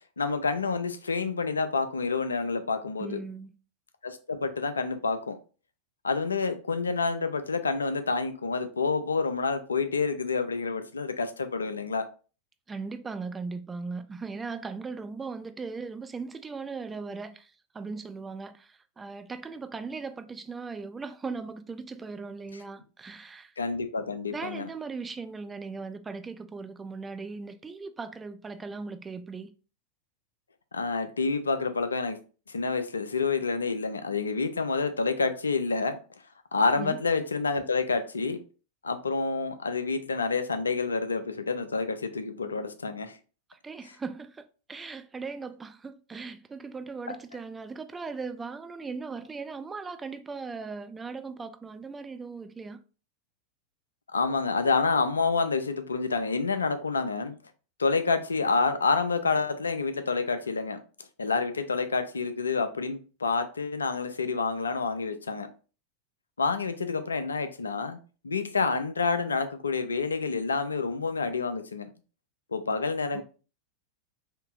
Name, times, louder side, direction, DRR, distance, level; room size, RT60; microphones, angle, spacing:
voice 1, 0.2-3.2 4.0-5.4 6.0-12.1 23.6-24.7 30.7-32.2 32.5-36.0 36.5-38.4 38.8-43.2 47.1-47.2 54.1-57.4 57.8-60.8 61.2-65.5 66.4-68.0 68.2-71.9 72.5-73.2, left 4 dB, 75° left, 0.4 m, -28 dB
voice 2, 3.0-3.5 12.7-23.5 24.3-29.5 36.8-37.0 43.5-52.8 73.1-73.2, right 4 dB, 15° right, 0.3 m, -38 dB
3.6 x 2.7 x 2.4 m
figure-of-eight pair, 90°, 0 cm